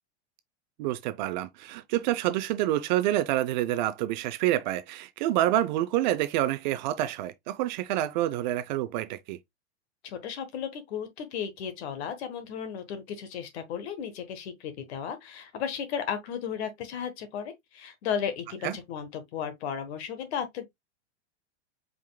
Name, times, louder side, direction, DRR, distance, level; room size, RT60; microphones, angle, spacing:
voice 1, 0.8-9.4 18.6-18.8, right 14 dB, 40° right, 0.4 m, -27 dB
voice 2, 10.0-20.7, left 8 dB, 65° left, 1.3 m, -34 dB
4.9 x 3.6 x 2.2 m
supercardioid pair, 145°, 36 cm